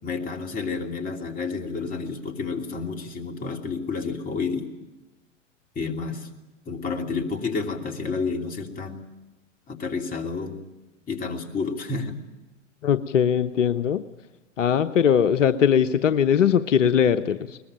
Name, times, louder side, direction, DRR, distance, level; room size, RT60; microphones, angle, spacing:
voice 1, 0.0-4.7 5.7-6.3 6.7-9.0 9.7-10.6 11.1-12.2, left 4 dB, 20° left, 3 dB, 2.8 m, -30 dB
voice 2, 12.8-14.0 14.6-17.6, left 8 dB, 75° left, 11 dB, 1.0 m, -20 dB
22.0 x 20.5 x 9.0 m, 1.1 s
hypercardioid pair, 105°, 38 cm